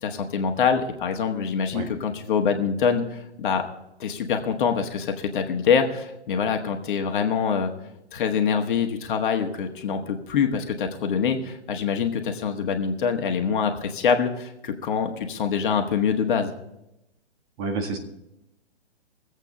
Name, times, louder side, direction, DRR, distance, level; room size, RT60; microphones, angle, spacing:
voice 1, 0.0-3.7 4.0-7.7 8.1-16.5, left 6 dB, 45° left, 5 dB, 1.5 m, -25 dB
voice 2, 17.6-18.0, right 4 dB, 30° right, 3 dB, 2.0 m, -28 dB
22.5 x 8.2 x 3.9 m, 0.87 s
figure-of-eight pair, 130°, 34 cm